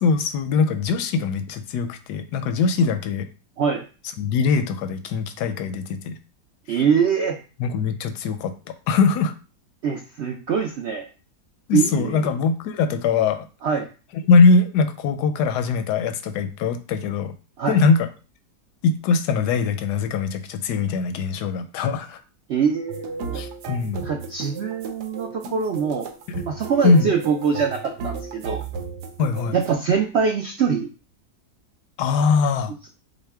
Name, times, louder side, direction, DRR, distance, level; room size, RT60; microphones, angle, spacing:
voice 1, 0.0-3.3 4.2-6.1 7.6-9.3 11.7-13.5 14.3-17.3 17.7-18.1 18.8-22.2 23.3-24.0 26.3-26.4 26.8-27.1 29.2-29.6 32.0-32.7, left 4 dB, 85° left, 9 dB, 1.2 m, -21 dB
voice 2, 6.7-7.4 9.8-11.1 11.7-12.3 13.6-13.9 17.6-17.8 22.5-23.4 24.0-26.1 26.5-28.6 29.5-30.9, right 6 dB, 70° right, 3 dB, 0.6 m, -23 dB
sound 1, 22.9-29.7, right 4 dB, 90° right, 1.3 m, -35 dB
6.3 x 2.1 x 3.5 m, 0.34 s
omnidirectional pair, 1.7 m